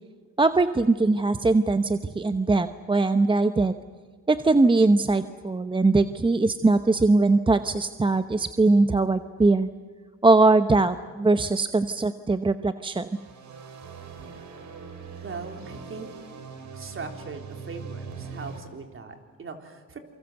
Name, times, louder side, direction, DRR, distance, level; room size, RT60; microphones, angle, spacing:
voice 1, 0.4-3.7 4.3-9.7 10.2-13.1, right 3 dB, 15° right, 10 dB, 0.8 m, -21 dB
sound 1, 12.9-18.6, right 5 dB, 65° right, 3.7 m, -41 dB
voice 2, 15.2-16.1 16.7-20.0, right 4 dB, 45° right, 4 dB, 3.8 m, -39 dB
27.5 x 24.0 x 8.0 m, 1.5 s
cardioid pair, 90°, 30 cm